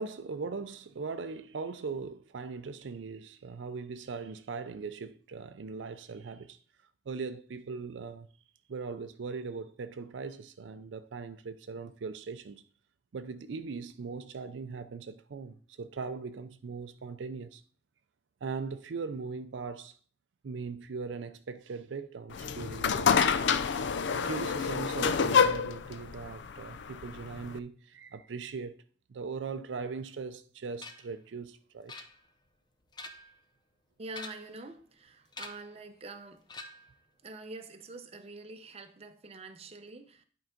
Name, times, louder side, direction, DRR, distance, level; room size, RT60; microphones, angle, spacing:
voice 1, 0.0-6.6 7.1-8.3 8.7-12.6 13.1-17.6 18.4-20.0 20.4-23.4 24.1-28.8 29.1-31.9, right 4 dB, 75° right, 0.5 m, -40 dB
sound 1, 22.3-27.6, left 6 dB, 70° left, 0.4 m, -28 dB
sound 2, 30.8-31.2 31.9-32.5 32.8-33.4 34.1-34.6 35.3-35.8 36.5-37.0, left 3 dB, 25° left, 0.6 m, -46 dB
voice 2, 34.0-36.5 37.2-40.2, right 2 dB, 35° right, 0.7 m, -45 dB
10.5 x 4.6 x 3.8 m
head